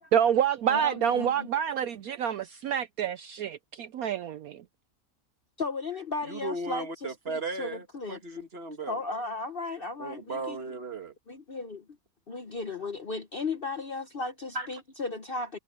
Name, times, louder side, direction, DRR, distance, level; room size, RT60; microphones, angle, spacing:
voice 1, 0.1-4.6, right 9 dB, 70° right, 1.0 m, -27 dB
voice 2, 0.7-1.5 5.6-8.2 8.9-10.6 11.3-11.8 12.3-15.6, left 3 dB, 45° left, 0.9 m, -35 dB
voice 3, 6.3-9.0 10.0-11.1 14.6-14.7, right 3 dB, 40° right, 1.7 m, -36 dB
omnidirectional pair, 1.8 m